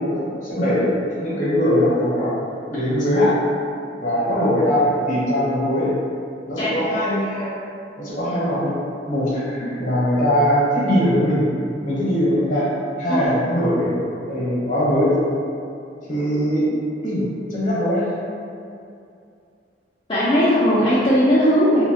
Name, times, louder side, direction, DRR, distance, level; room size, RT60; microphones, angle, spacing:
voice 1, 0.0-2.4 2.7-3.3 4.0-5.9 6.5-7.5 8.0-8.8 9.1-11.4 11.8-12.7 13.0-13.9 14.3-15.1 16.1-16.7 17.0-18.1, equal, 45° left, -8 dB, 0.8 m, -21 dB
voice 2, 6.6-6.9 13.1-13.2 20.1-21.8, equal, 30° left, -12 dB, 0.4 m, -18 dB
2.8 x 2.1 x 2.7 m, 2.5 s
head